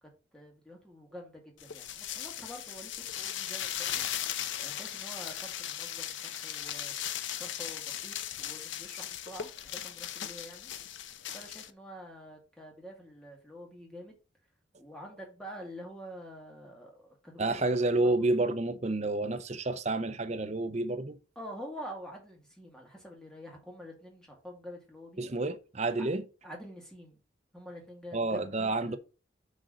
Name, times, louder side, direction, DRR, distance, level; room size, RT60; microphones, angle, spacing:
voice 1, 0.0-4.0 4.6-7.0 7.3-10.7 11.3-14.2 14.8-17.5 18.1-18.2 21.4-25.3 26.0-26.1 26.4-27.2 27.5-29.0, equal, 5° left, 2.1 m, -47 dB
sound 1, 1.6-11.7, left 10 dB, 75° left, 0.6 m, -38 dB
voice 2, 17.4-21.2 25.2-26.2 28.1-29.0, right 2 dB, 35° right, 0.7 m, -29 dB
6.4 x 3.8 x 6.2 m
head